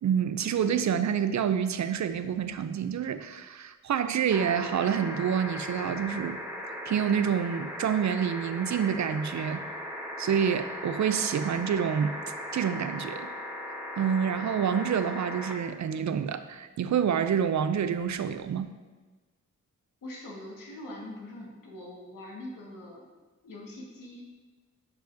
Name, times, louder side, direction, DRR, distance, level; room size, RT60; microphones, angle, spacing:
voice 1, 0.0-6.4 6.9-9.6 10.2-12.2 12.5-13.3 14.0-18.7, right 8 dB, 60° right, 11 dB, 0.5 m, -27 dB
sound 1, 4.3-15.5 17.0-17.1, equal, 5° right, 1.5 m, -38 dB
voice 2, 20.0-23.1 23.4-24.2, left 1 dB, 80° left, -2 dB, 1.8 m, -43 dB
10.5 x 4.7 x 2.7 m, 1.3 s
cardioid pair, 60°, 32 cm